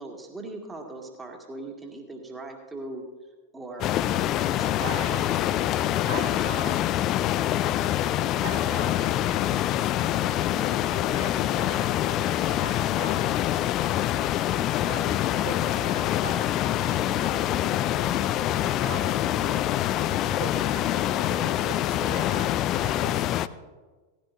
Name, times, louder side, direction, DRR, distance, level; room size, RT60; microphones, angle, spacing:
voice 1, 0.0-3.0 3.5-5.4 6.1-6.9, right 2 dB, 15° right, 1 dB, 2.0 m, -40 dB
sound 1, 3.8-23.5, left 12 dB, 35° left, 0.4 m, -25 dB
voice 2, 4.8-5.3 6.1-6.7 8.4-9.8 10.2-13.5 14.8-23.2, right 4 dB, 60° right, -1 dB, 1.8 m, -41 dB
18.0 x 15.0 x 2.6 m, 1.3 s
figure-of-eight pair, 90°, 0 cm